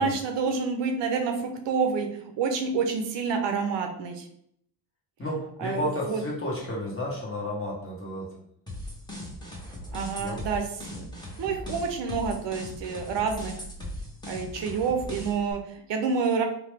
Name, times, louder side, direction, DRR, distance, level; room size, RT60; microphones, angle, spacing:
voice 1, 0.0-2.1 2.4-4.3 5.6-6.2 9.9-10.6 10.9-11.1 11.4-13.5 14.3-16.4, right 5 dB, 70° right, 4 dB, 0.6 m, -28 dB
voice 2, 5.2-8.3 10.2-10.4, left 1 dB, 30° left, -3 dB, 1.2 m, -32 dB
sound 1, 8.7-15.5, left 1 dB, 10° left, 1.1 m, -39 dB
2.8 x 2.2 x 3.3 m, 0.70 s
supercardioid pair, 55°, 45 cm